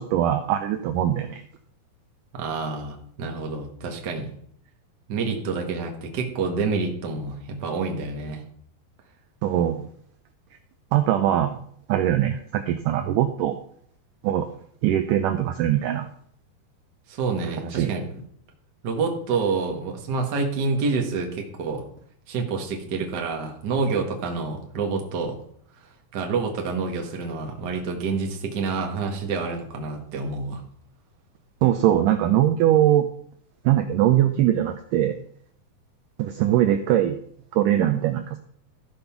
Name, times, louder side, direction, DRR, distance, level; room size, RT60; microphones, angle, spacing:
voice 1, 0.0-1.4 9.4-9.9 10.9-11.5 11.9-13.6 14.2-14.5 14.8-16.1 17.6-17.9 31.6-33.1 33.7-35.2 36.2-37.2 37.5-38.4, right 12 dB, 85° right, 7 dB, 1.9 m, -21 dB
voice 2, 2.3-4.3 5.1-8.4 17.1-18.2 18.8-21.8 22.3-25.4 26.1-30.6, right 4 dB, 50° right, 2 dB, 1.3 m, -28 dB
14.0 x 5.4 x 5.9 m, 0.64 s
omnidirectional pair, 4.5 m